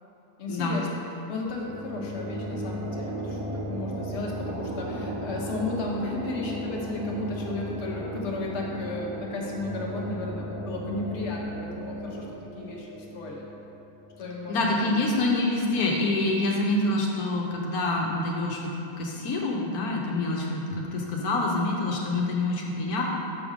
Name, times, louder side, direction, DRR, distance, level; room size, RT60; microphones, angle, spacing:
voice 1, 0.4-0.9 1.3-12.3 12.5-13.5 14.2-15.0, left 2 dB, 50° left, -2 dB, 1.2 m, -34 dB
sound 1, 1.4-14.8, equal, 85° right, 1.7 m, -36 dB
voice 2, 14.5-18.6 19.0-23.0, left 2 dB, 85° left, -2 dB, 1.4 m, -26 dB
7.2 x 5.2 x 4.9 m, 2.9 s
omnidirectional pair, 1.6 m